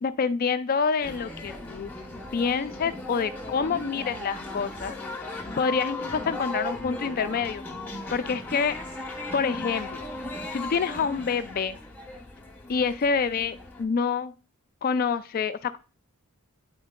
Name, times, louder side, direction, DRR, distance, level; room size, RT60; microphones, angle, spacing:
voice 1, 0.0-1.9 2.3-4.9 5.2-5.3 5.6-7.6 8.1-8.8 9.3-10.1 10.5-11.8 12.7-14.3 14.8-15.8, left 5 dB, 40° left, 12 dB, 0.3 m, -27 dB
sound 1, 1.0-13.8, left 2 dB, 5° left, 0.8 m, -37 dB
9.3 x 4.5 x 2.2 m, 0.33 s
head